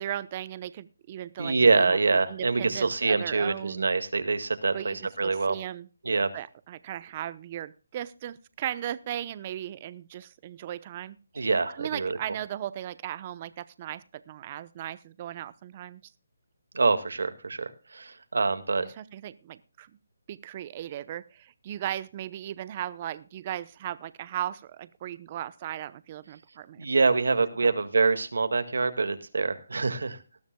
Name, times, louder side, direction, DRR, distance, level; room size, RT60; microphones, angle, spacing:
voice 1, 0.0-2.0 2.3-3.9 4.7-5.9 6.3-11.5 11.7-16.0 18.8-19.9 20.3-26.9 27.6-27.7, right 11 dB, 30° right, 16 dB, 0.8 m, -37 dB
voice 2, 1.4-5.6 6.0-6.3 11.4-12.2 16.7-18.9 26.8-30.2, right 4 dB, 80° right, 10 dB, 1.9 m, -25 dB
19.5 x 12.5 x 2.3 m, 0.34 s
hypercardioid pair, 165°, 0 cm